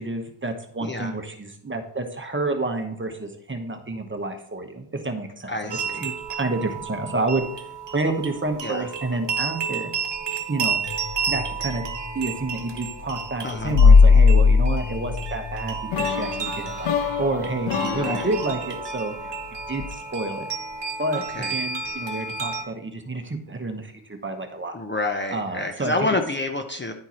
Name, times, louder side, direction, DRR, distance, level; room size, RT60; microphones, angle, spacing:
voice 1, 0.0-7.5 7.9-9.9 10.5-10.8 11.3-11.8 12.1-19.1 19.7-20.5 21.0-24.7 25.3-25.9, right 2 dB, 25° right, 5 dB, 1.1 m, -29 dB
voice 2, 0.8-1.2 5.5-6.1 8.6-8.9 13.4-13.7 17.8-18.3 21.1-21.5 24.7-26.9, left 2 dB, 25° left, 5 dB, 0.8 m, -28 dB
sound 1, 5.7-22.6, right 5 dB, 60° right, 1.2 m, -32 dB
sound 2, 10.9-12.1 13.6-16.2 16.7-16.8 19.8-19.9, left 5 dB, 65° left, 0.8 m, -16 dB
sound 3, 15.9-19.9, left 7 dB, 90° left, 0.9 m, -30 dB
10.5 x 4.5 x 4.3 m, 0.68 s
wide cardioid pair, 105°, 48 cm